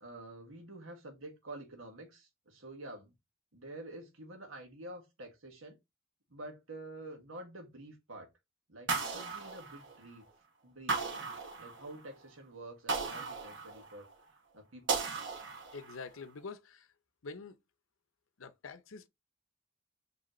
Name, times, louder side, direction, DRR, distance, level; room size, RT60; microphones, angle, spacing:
voice 1, 0.0-3.1 3.5-5.8 6.3-8.3 8.7-10.2 10.6-11.0 11.6-14.1 14.5-15.1, right 2 dB, 75° right, 1.5 m, -48 dB
sound 1, 8.9-10.2 10.9-12.1 12.9-14.1 14.9-16.1, right 4 dB, 60° right, 1.3 m, -36 dB
voice 2, 15.7-16.9 17.2-17.6 18.4-19.1, left 4 dB, 75° left, 0.7 m, -46 dB
5.1 x 3.1 x 3.1 m
head